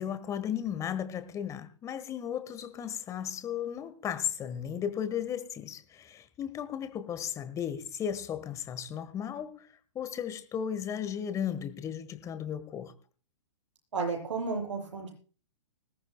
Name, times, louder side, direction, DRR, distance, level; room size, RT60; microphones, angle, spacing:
voice 1, 0.0-9.7 9.9-12.9, left 9 dB, 20° left, 12 dB, 1.4 m, -35 dB
voice 2, 13.9-15.1, right 4 dB, 70° right, 1 dB, 7.9 m, -32 dB
20.5 x 17.5 x 2.2 m, 0.38 s
figure-of-eight pair, 115°, 16 cm